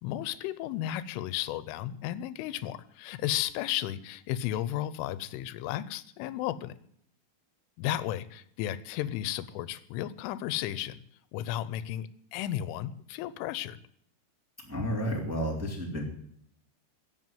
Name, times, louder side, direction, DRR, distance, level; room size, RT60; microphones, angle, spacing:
voice 1, 0.0-6.7 7.8-11.0 11.3-13.8, left 13 dB, 90° left, 16 dB, 3.3 m, -34 dB
voice 2, 14.6-16.0, equal, 5° right, 0 dB, 2.3 m, -31 dB
15.0 x 7.9 x 9.2 m, 0.66 s
omnidirectional pair, 5.5 m